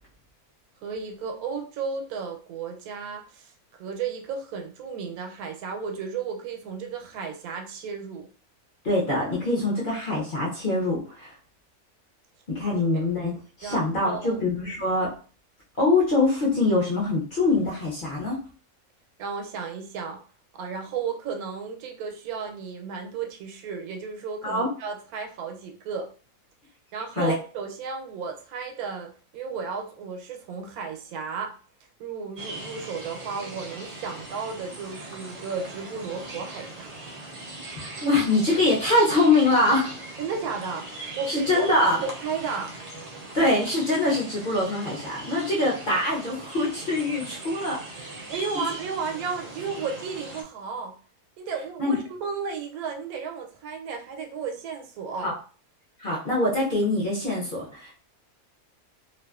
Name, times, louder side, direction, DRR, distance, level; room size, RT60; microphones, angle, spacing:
voice 1, 0.8-3.5 3.8-8.3 12.9-13.0 13.6-14.4 19.2-20.2 20.5-26.1 26.9-31.5 32.0-36.9 40.2-40.9 41.2-41.7 42.0-42.7 48.3-50.9 51.4-55.3, right 5 dB, 90° right, 3 dB, 1.1 m, -33 dB
voice 2, 8.8-11.3 12.5-13.3 13.6-15.1 15.8-18.4 24.4-24.7 27.2-27.3 37.7-39.9 41.3-42.0 43.4-48.1 51.8-52.0 55.2-55.3 56.0-57.9, left 2 dB, 50° left, -4 dB, 0.7 m, -24 dB
sound 1, 32.4-50.4, right 2 dB, 75° right, 0.3 m, -40 dB
2.5 x 2.3 x 2.3 m, 0.39 s
omnidirectional pair, 1.5 m